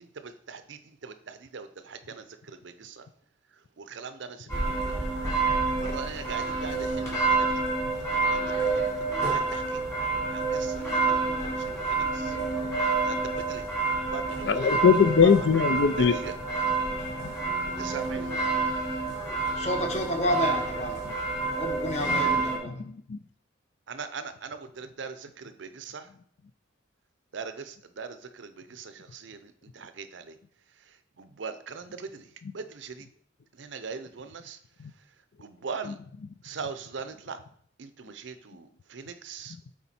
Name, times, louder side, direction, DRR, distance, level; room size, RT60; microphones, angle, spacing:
voice 1, 0.5-0.8 1.0-2.2 2.8-2.9 3.9-4.8 5.8-7.5 8.1-8.9 9.3-9.6 10.3-11.1 11.4-11.6 11.9-12.0 13.0-13.2 13.5-13.6 14.1-14.8 15.2-15.3 16.0-16.3 17.8-18.3 23.9-26.0 27.3-28.1 28.4-28.5 28.8-29.4 29.8-30.2 31.2-32.2 32.5-33.0 33.6-34.6 35.4-35.9 36.4-37.4 37.8-38.6 38.9-39.5, right 5 dB, 70° right, 11 dB, 0.6 m, -40 dB
sound 1, 4.5-22.6, right 3 dB, 15° left, 1.8 m, -28 dB
voice 2, 14.4-16.2 22.8-23.2 35.9-36.0, left 6 dB, 65° left, 12 dB, 0.4 m, -21 dB
voice 3, 19.5-21.0 21.6-22.8, left 1 dB, 35° left, 4 dB, 0.9 m, -30 dB
7.2 x 4.6 x 4.2 m, 0.64 s
head